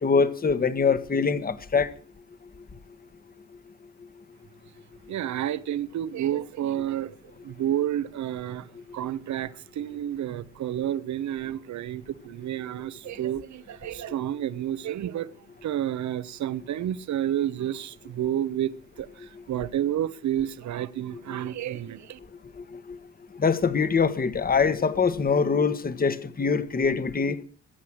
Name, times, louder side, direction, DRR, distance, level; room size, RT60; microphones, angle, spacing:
voice 1, 0.0-1.9 22.6-23.0 23.4-27.4, left 5 dB, 30° left, 1.5 m, -24 dB
voice 2, 5.1-8.7 8.9-15.3 15.6-22.2, right 11 dB, 70° right, 1.1 m, -30 dB
22.0 x 8.4 x 6.4 m
cardioid pair, 90°, 30 cm